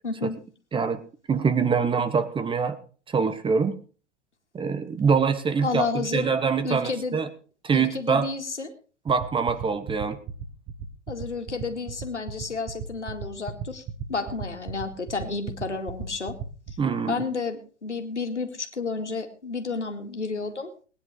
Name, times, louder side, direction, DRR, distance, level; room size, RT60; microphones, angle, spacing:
voice 1, 0.0-0.4 5.6-6.3 6.6-7.2 7.7-8.7 11.1-13.8 14.1-16.3 17.1-20.7, left 4 dB, 80° left, 5 dB, 2.4 m, -31 dB
voice 2, 1.3-2.8 3.1-3.8 4.5-7.3 7.6-8.3 9.1-10.2 16.8-17.2, right 5 dB, 15° right, 11 dB, 1.2 m, -24 dB
sound 1, 9.1-16.7, right 8 dB, 30° right, 1.9 m, -34 dB
19.5 x 10.0 x 4.8 m, 0.39 s
figure-of-eight pair, 95°, 35 cm